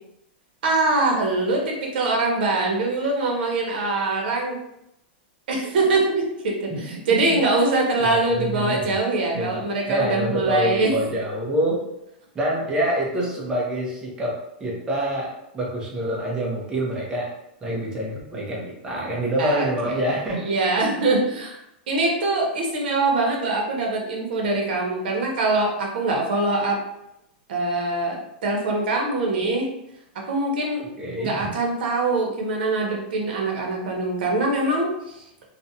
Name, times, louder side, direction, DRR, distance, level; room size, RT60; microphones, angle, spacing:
voice 1, 0.6-4.6 5.5-10.9 19.4-19.7 20.4-21.6 21.9-26.8 27.5-29.7 30.3-30.8 31.2-35.2, right 2 dB, 70° right, 0 dB, 0.8 m, -23 dB
voice 2, 7.1-7.4 8.0-8.9 9.3-11.8 12.3-17.3 17.6-20.5 20.8-20.9 31.0-31.6, right 1 dB, 15° right, -3 dB, 0.5 m, -26 dB
2.5 x 2.1 x 2.6 m, 0.83 s
supercardioid pair, 165°, 5 cm